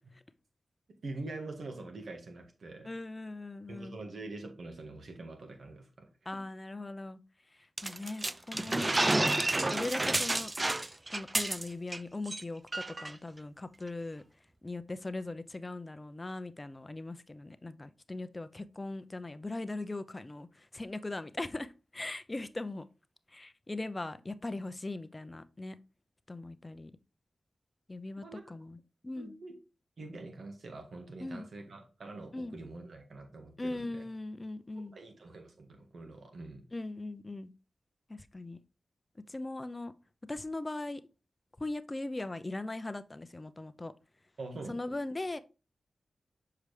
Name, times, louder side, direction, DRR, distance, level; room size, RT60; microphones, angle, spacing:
voice 1, 1.0-2.9 3.7-6.4 28.2-28.5 29.2-29.5 30.0-34.0 34.9-36.7 44.4-44.8, right 2 dB, 75° right, 1.6 m, -45 dB
voice 2, 2.8-4.0 6.3-7.2 7.8-9.3 9.7-10.5 11.1-14.2 14.6-22.8 23.3-25.8 26.3-26.9 27.9-28.8 29.0-29.3 31.2-31.5 32.3-32.6 33.6-35.0 36.7-37.5 38.1-38.6 39.3-39.9 40.3-41.0 41.6-43.9 44.7-45.4, left 2 dB, 30° left, 0.6 m, -39 dB
sound 1, 7.8-12.0 12.3-12.4 12.7-13.1, right 2 dB, 30° right, 0.3 m, -30 dB
6.8 x 4.8 x 3.2 m
cardioid pair, 40°, 0 cm